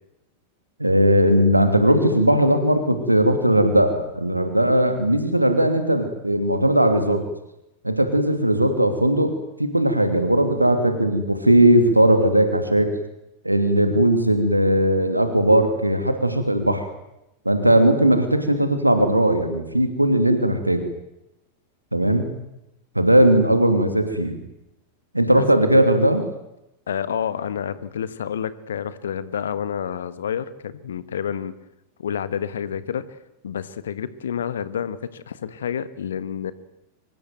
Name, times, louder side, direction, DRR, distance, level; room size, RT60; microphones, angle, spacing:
voice 1, 0.8-7.2 7.8-9.3 9.6-12.9 13.4-16.8 17.4-20.9 21.9-22.3 22.9-24.4 25.1-26.2, right 1 dB, 85° right, 7 dB, 2.8 m, -18 dB
voice 2, 26.9-31.5 32.0-33.2 33.4-36.5, left 8 dB, 65° left, 15 dB, 1.5 m, -29 dB
25.0 x 21.5 x 9.3 m, 0.88 s
figure-of-eight pair, 90°, 0 cm